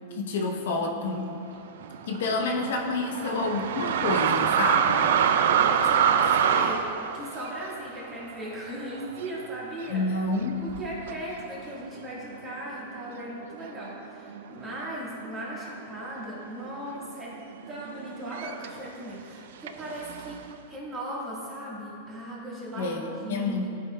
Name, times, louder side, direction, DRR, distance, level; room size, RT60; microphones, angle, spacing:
voice 1, 0.1-1.4 2.0-5.1 9.9-10.6 22.7-23.7, left 3 dB, 75° left, 2 dB, 0.8 m, -29 dB
sound 1, 1.8-9.4 9.8-9.9 10.7-11.1 11.9-12.0 12.3-14.0 14.3-14.9 15.1-18.9 19.7-20.5, right 8 dB, 70° right, 0.3 m, -26 dB
voice 2, 2.3-2.7 3.2-3.6 5.5-10.0 10.6-17.3 17.7-23.7, right 1 dB, 15° right, -6 dB, 1.5 m, -38 dB
12.0 x 5.2 x 2.2 m, 2.7 s
supercardioid pair, 165°, 0 cm